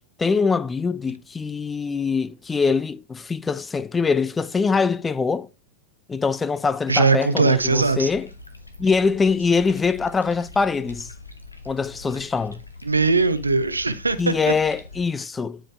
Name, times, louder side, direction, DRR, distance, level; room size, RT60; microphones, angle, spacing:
voice 1, 0.2-5.5 6.1-8.3 8.8-11.1 11.7-12.6 14.2-15.6, left 5 dB, 15° left, 0.3 m, -23 dB
voice 2, 6.9-8.1 12.8-14.5, right 4 dB, 80° right, 0.6 m, -20 dB
sound 1, 7.5-15.0, left 3 dB, 85° left, 1.0 m, -43 dB
9.8 x 5.0 x 3.3 m
figure-of-eight pair, 90°, 0 cm